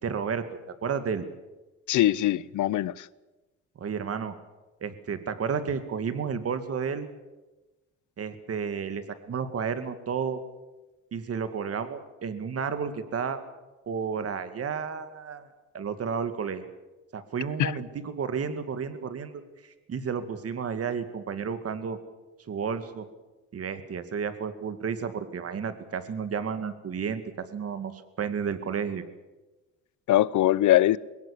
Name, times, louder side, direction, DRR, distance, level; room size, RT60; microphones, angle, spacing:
voice 1, 0.0-0.5 0.8-1.2 3.8-4.3 4.8-7.1 8.2-10.4 11.1-13.4 13.9-15.5 15.7-16.6 17.1-19.4 19.9-22.0 22.5-23.1 23.5-29.0, right 6 dB, 50° right, 2.3 m, -32 dB
voice 2, 1.9-3.1 17.6-17.7 30.1-31.0, left 14 dB, 75° left, 0.8 m, -22 dB
21.5 x 17.5 x 8.5 m
cardioid pair, 90°, 30 cm